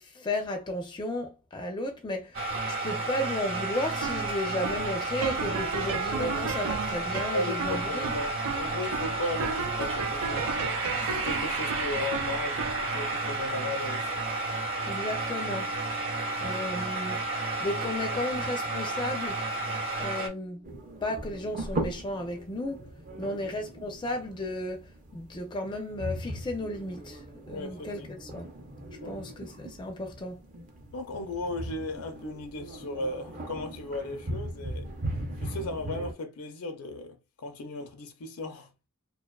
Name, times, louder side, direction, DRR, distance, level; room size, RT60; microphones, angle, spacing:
voice 1, 0.0-2.4 2.7-8.2 14.8-15.7 16.4-17.2 17.6-19.5 20.0-20.7 21.0-22.9 23.2-27.2 27.5-28.5 29.0-30.4, left 1 dB, 20° left, 0.4 m, -34 dB
sound 1, 2.3-20.3, right 2 dB, 60° right, 0.8 m, -32 dB
sound 2, 3.8-21.0, right 5 dB, 85° right, 0.4 m, -38 dB
voice 2, 7.3-10.6 11.0-14.1 16.7-16.8 23.2-23.4 27.5-28.1 29.0-29.3 30.9-34.9 35.4-38.7, left 2 dB, 70° left, 0.5 m, -36 dB
sound 3, 20.6-36.1, right 1 dB, 35° right, 0.5 m, -39 dB
2.4 x 2.3 x 2.3 m
head